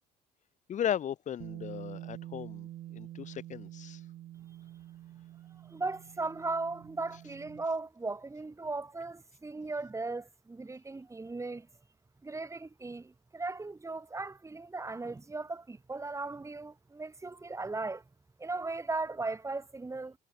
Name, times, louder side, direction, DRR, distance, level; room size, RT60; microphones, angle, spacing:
voice 1, 0.7-4.0, left 9 dB, 45° left, 1.0 m, -36 dB
Bass guitar, 1.4-7.6, right 13 dB, 70° right, 4.3 m, -47 dB
voice 2, 5.6-11.7 12.2-18.0 18.4-20.2, right 3 dB, 15° right, 5.8 m, -37 dB
cardioid pair, 110°, 17 cm